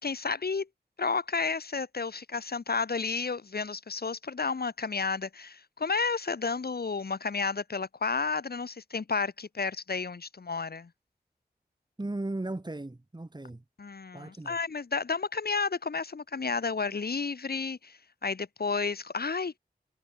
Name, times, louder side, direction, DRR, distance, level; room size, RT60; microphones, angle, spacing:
voice 1, 0.0-0.7 1.0-10.9 13.8-19.6, left 4 dB, 75° left, 2.6 m, -31 dB
voice 2, 12.0-13.6 14.1-14.6, right 2 dB, 25° right, 3.0 m, -36 dB
wide cardioid pair, 65°, 16 cm